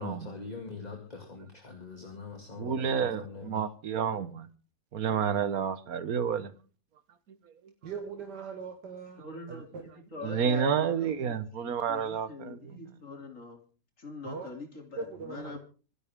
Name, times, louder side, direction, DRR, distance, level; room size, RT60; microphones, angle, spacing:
voice 1, 0.0-3.5, left 4 dB, 25° left, 2.4 m, -43 dB
voice 2, 2.6-4.5 4.9-6.5 10.2-12.9, right 7 dB, 60° right, 1.6 m, -30 dB
voice 3, 7.8-9.2 9.5-9.8 14.2-14.5 14.9-15.6, right 5 dB, 85° right, 2.2 m, -40 dB
voice 4, 9.2-9.7 10.1-10.9 11.3-11.4 11.6-13.6 14.0-15.6, left 3 dB, 50° left, 3.5 m, -43 dB
26.0 x 11.5 x 3.6 m
omnidirectional pair, 1.8 m